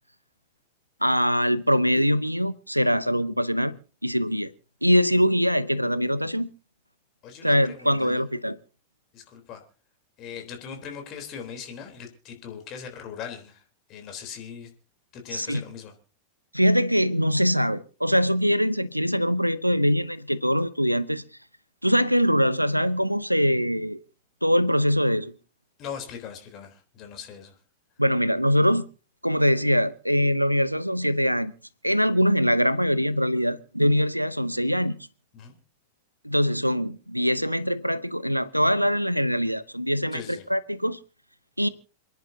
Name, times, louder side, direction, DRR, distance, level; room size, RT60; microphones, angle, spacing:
voice 1, 1.0-3.8 4.0-4.5 4.8-6.5 7.4-8.6 15.3-15.6 16.5-21.2 21.8-24.0 24.4-25.3 28.0-28.9 29.2-31.5 31.8-35.0 36.2-41.0 41.6-41.7, equal, 90° right, 0.6 m, -23 dB
voice 2, 7.2-8.2 9.1-9.6 10.2-13.6 13.9-14.7 15.1-15.9 25.8-27.6 35.3-35.6 40.1-40.4, left 7 dB, 35° left, 3.6 m, -40 dB
28.0 x 10.5 x 2.8 m
figure-of-eight pair, 90°, 0 cm